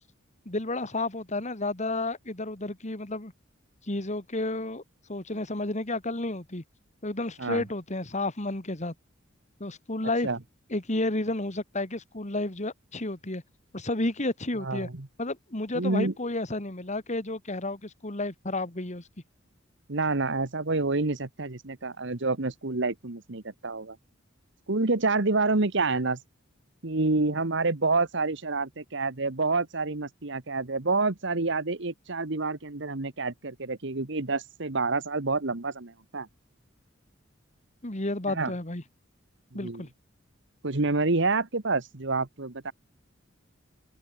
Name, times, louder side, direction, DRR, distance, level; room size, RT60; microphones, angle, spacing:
voice 1, 0.5-3.3 3.9-4.8 5.1-6.6 7.0-8.9 9.6-10.3 10.7-13.4 13.7-14.9 15.2-19.0 37.8-38.8 39.5-39.9, left 2 dB, 35° left, 2.5 m, -31 dB
voice 2, 14.6-15.1 15.7-16.1 19.9-24.0 24.7-26.2 26.8-36.3 38.3-38.5 39.5-39.8 40.6-42.7, right 3 dB, 65° right, 1.5 m, -28 dB
head